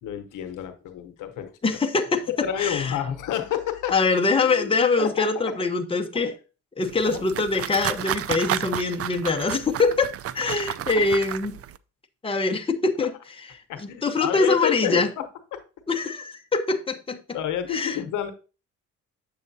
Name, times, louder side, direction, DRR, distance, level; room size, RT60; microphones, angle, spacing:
voice 1, 0.0-1.5 2.3-4.0 4.4-5.5 6.1-6.2 7.0-7.2 13.7-15.6 17.3-18.3, left 10 dB, 85° left, 0.9 m, -29 dB
voice 2, 1.6-2.2 2.6-2.9 3.9-6.3 6.8-10.1 10.3-11.6 12.2-13.1 14.0-15.1 15.9-17.2 17.7-18.0, left 3 dB, 20° left, 1.0 m, -23 dB
sound 1, 6.8-11.8, right 11 dB, 50° right, 0.4 m, -32 dB
7.8 x 6.7 x 2.7 m
cardioid pair, 90°, 30 cm